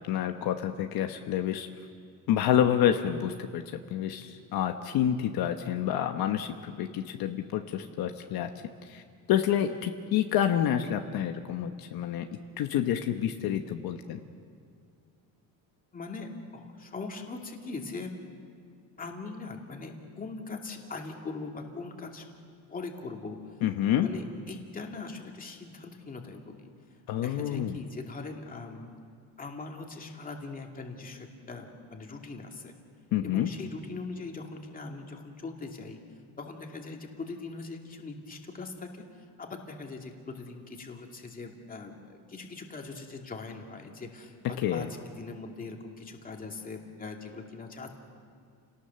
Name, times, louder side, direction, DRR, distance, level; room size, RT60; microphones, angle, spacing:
voice 1, 0.0-1.7 2.3-3.6 3.9-8.5 8.9-9.0 9.3-12.3 12.6-14.2 23.6-24.1 27.1-27.8 33.1-33.5 44.6-44.9, left 10 dB, 65° left, 5 dB, 1.1 m, -28 dB
voice 2, 15.9-18.2 19.0-22.3 22.7-23.5 24.0-26.7 27.2-28.9 29.4-32.7 33.2-36.0 36.4-39.0 39.4-47.9, left 3 dB, 20° left, 2 dB, 2.4 m, -41 dB
30.0 x 18.5 x 6.9 m, 2.3 s
cardioid pair, 150°, 39 cm